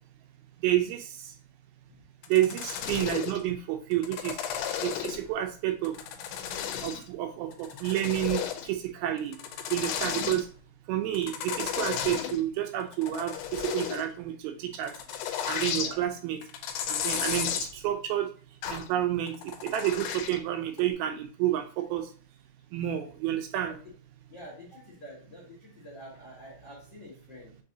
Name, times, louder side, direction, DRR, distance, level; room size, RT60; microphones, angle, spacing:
voice 1, 0.6-1.1 2.3-4.4 4.8-6.0 6.8-9.3 9.7-10.5 10.9-14.9 15.5-16.4 16.9-18.3 18.7-22.0 22.7-23.8, right 12 dB, 80° right, 5 dB, 2.3 m, -29 dB
sound 1, 2.2-3.4 3.9-5.3 5.8-7.1 7.5-8.7 9.2-10.4 11.1-12.4 12.8-14.1 14.7-15.9 16.4-17.7 18.6-18.9 19.3-20.4 20.8-20.9, left 9 dB, 85° left, 2.7 m, -33 dB
voice 2, 24.3-27.6, equal, 65° left, -6 dB, 1.1 m, -47 dB
5.9 x 2.8 x 2.6 m, 0.42 s
omnidirectional pair, 4.5 m